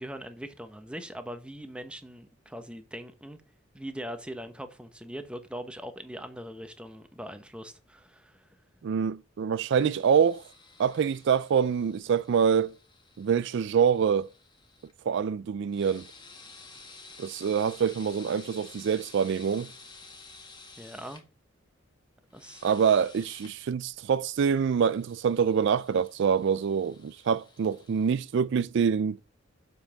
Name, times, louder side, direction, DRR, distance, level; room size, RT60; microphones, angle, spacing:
voice 1, 0.0-3.4 3.7-8.5 20.8-21.2 22.3-22.6, equal, 5° right, 1.0 m, -41 dB
voice 2, 8.8-10.4 10.8-12.8 13.2-14.3 15.1-16.1 17.2-19.7 22.6-29.2, right 7 dB, 65° right, 0.4 m, -25 dB
sound 1, 9.6-14.9 15.7-21.2 22.3-23.5 24.6-28.2, left 4 dB, 25° left, 1.7 m, -52 dB
7.3 x 5.4 x 6.5 m
head